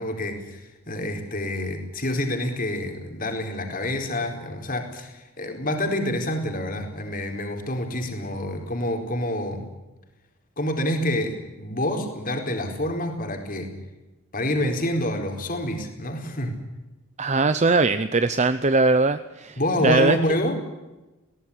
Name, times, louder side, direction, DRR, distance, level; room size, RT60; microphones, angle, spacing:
voice 1, 0.0-9.6 10.6-13.7 14.3-16.6 19.6-20.6, left 1 dB, 40° left, 4 dB, 4.4 m, -27 dB
voice 2, 17.2-20.2, right 3 dB, 30° right, 11 dB, 0.7 m, -21 dB
21.5 x 18.0 x 10.0 m, 1.1 s
head